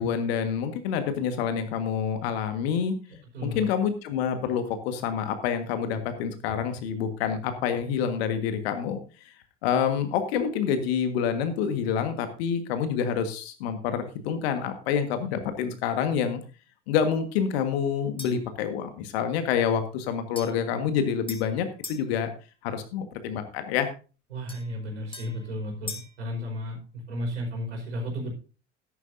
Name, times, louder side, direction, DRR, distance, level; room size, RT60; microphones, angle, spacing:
voice 1, 0.0-2.9 3.4-9.0 9.6-16.4 16.9-22.3 22.6-23.9, left 7 dB, 55° left, 8 dB, 1.6 m, -27 dB
voice 2, 3.3-3.7 15.3-15.4 24.3-26.8 27.1-28.3, equal, 70° right, 0 dB, 4.8 m, -33 dB
sound 1, 18.2-18.5 20.4-22.1 24.5-26.2, left 3 dB, 15° left, 2.3 m, -42 dB
13.0 x 11.0 x 2.7 m, 0.35 s
figure-of-eight pair, 70°, 36 cm